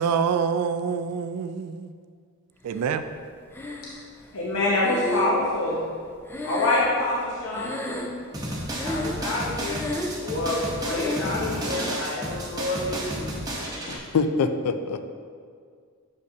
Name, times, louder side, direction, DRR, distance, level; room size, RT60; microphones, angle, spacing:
voice 1, 0.0-1.9 2.6-3.0, right 6 dB, 85° right, 9 dB, 0.3 m, -26 dB
Breathing, 3.5-4.2 4.8-7.3 7.5-8.4 8.7-9.3 9.6-10.3 10.9-11.4, left 2 dB, 10° left, 0.3 m, -32 dB
voice 2, 4.3-5.8 6.4-7.9 8.8-9.9 10.2-13.3, left 2 dB, 65° left, -6 dB, 0.8 m, -26 dB
sound 1, 8.3-14.0, right 1 dB, 15° right, 0.8 m, -32 dB
voice 3, 13.9-15.0, left 4 dB, 90° left, 9 dB, 0.4 m, -25 dB
6.5 x 5.3 x 2.7 m, 2.1 s
head